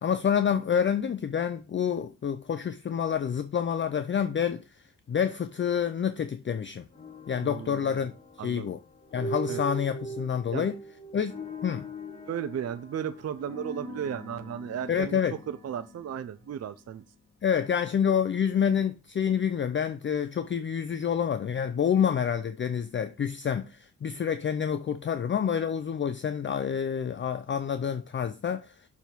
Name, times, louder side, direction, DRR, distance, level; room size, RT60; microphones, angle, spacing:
voice 1, 0.0-4.6 5.1-6.8 7.3-8.1 8.4-8.8 9.1-10.7 11.1-11.3 11.6-11.9 14.9-15.4 17.4-28.7, left 8 dB, 35° left, 0.5 m, -28 dB
sound 1, 6.9-17.0, right 1 dB, 20° left, 1.3 m, -42 dB
voice 2, 7.4-8.0 8.4-8.7 9.5-9.6 10.5-10.7 12.3-15.2 15.5-17.0, right 9 dB, 50° right, 0.5 m, -35 dB
6.9 x 3.5 x 6.0 m
wide cardioid pair, 120°, 32 cm